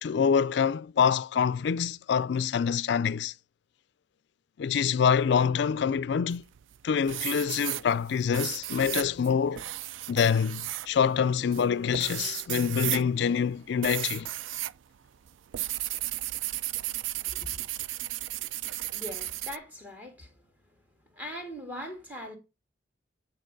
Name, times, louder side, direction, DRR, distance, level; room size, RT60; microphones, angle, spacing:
voice 1, 0.0-3.3 4.6-6.4 6.8-9.6 10.1-14.3, left 7 dB, 65° left, 0.3 m, -26 dB
sound 1, 6.3-6.8 7.1-14.8 15.0-19.6, right 14 dB, 85° right, 0.3 m, -34 dB
voice 2, 17.2-17.6 18.9-20.4 21.1-22.4, left 1 dB, 10° right, 1.7 m, -41 dB
9.0 x 3.9 x 5.2 m
head